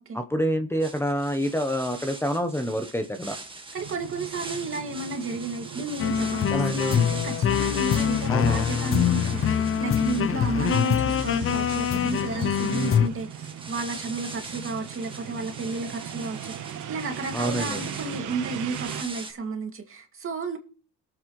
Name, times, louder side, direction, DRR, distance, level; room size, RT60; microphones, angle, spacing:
voice 1, 0.1-3.4 6.5-7.0 8.3-8.7 12.7-13.0 17.3-17.9, equal, 10° left, 0.9 m, -27 dB
sound 1, 0.8-19.3, right 3 dB, 15° right, 1.8 m, -41 dB
voice 2, 3.7-20.6, right 3 dB, 45° right, 2.3 m, -32 dB
sound 2, 3.8-19.0, right 10 dB, 80° right, 1.1 m, -39 dB
sound 3, 6.0-13.1, left 9 dB, 45° left, 0.6 m, -24 dB
21.0 x 7.7 x 3.1 m
cardioid pair, 90°, 30 cm